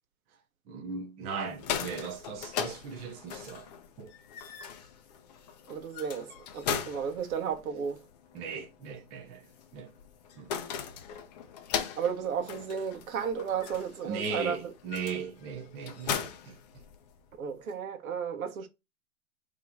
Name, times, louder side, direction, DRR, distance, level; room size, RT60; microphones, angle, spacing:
voice 1, 0.7-3.7 4.0-4.1 8.3-9.4 9.7-9.9 10.4-10.5 14.0-16.6, right 5 dB, 20° right, 0.5 m, -38 dB
sound 1, 1.4-17.3, left 8 dB, 30° left, 0.5 m, -39 dB
voice 2, 5.7-8.0 12.0-14.7 17.4-18.7, right 7 dB, 70° right, 1.3 m, -33 dB
3.7 x 3.1 x 3.4 m
hypercardioid pair, 145°, 44 cm